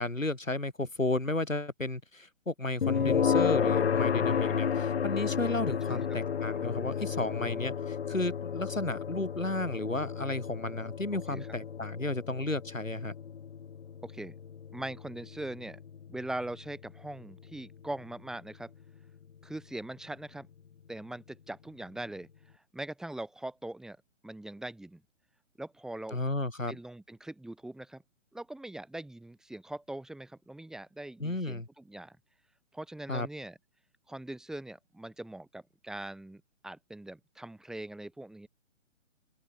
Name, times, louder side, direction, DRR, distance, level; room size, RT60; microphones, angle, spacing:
voice 1, 0.0-13.1 26.1-26.8 31.2-31.7 33.1-33.3, left 2 dB, 85° left, 6.1 m, -33 dB
sound 1, 2.8-17.7, left 7 dB, 55° left, 1.3 m, -32 dB
voice 2, 2.9-3.8 5.9-6.0 11.3-11.5 14.0-14.3 14.7-15.8 16.1-18.7 19.4-20.5 20.9-22.3 22.5-24.0 24.2-25.0 25.6-26.2 26.7-28.0 28.3-32.2 32.7-33.6 34.1-38.5, right 1 dB, ahead, 1.5 m, -41 dB
figure-of-eight pair, 135°, 38 cm